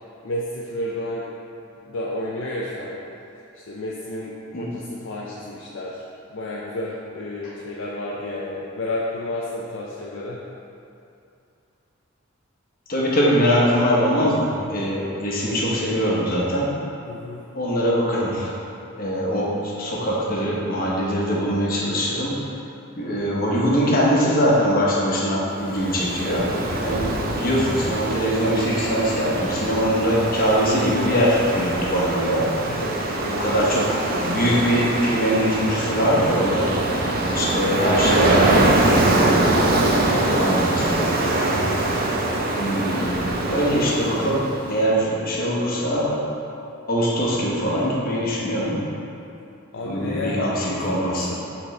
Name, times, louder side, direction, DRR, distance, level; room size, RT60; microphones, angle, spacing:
voice 1, 0.2-1.2 1.9-3.0 3.5-6.0 6.3-10.4 17.1-17.4 27.0-27.4 32.7-33.5 49.7-51.3, left 1 dB, 60° left, -5 dB, 0.5 m, -31 dB
voice 2, 12.9-16.7 17.5-18.5 19.0-22.3 23.0-26.5 26.8-32.5 33.3-33.8 34.1-36.7 37.3-38.7 39.0-39.4 40.1-41.1 42.6-43.1 43.5-46.2 46.9-48.8 49.8-51.3, equal, 45° left, -5 dB, 1.0 m, -22 dB
Ocean, 25.6-44.7, right 2 dB, 45° right, 0.6 m, -23 dB
7.7 x 4.0 x 3.2 m, 2.7 s
head